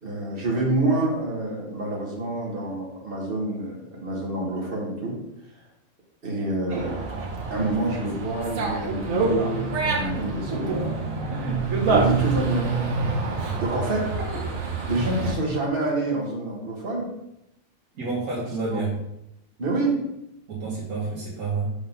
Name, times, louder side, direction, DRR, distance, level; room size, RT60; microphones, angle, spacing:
voice 1, 0.0-5.2 6.2-7.0 7.5-11.0 11.8-12.7 13.6-14.1 14.9-17.1 18.7-18.8 19.6-20.0, right 2 dB, 40° right, -2 dB, 1.7 m, -27 dB
Dog, 6.7-15.4, right 4 dB, 70° right, 1.4 m, -27 dB
voice 2, 17.9-18.9 20.5-21.7, right 4 dB, 85° right, -6 dB, 1.7 m, -29 dB
4.9 x 3.8 x 5.4 m, 0.84 s
omnidirectional pair, 1.5 m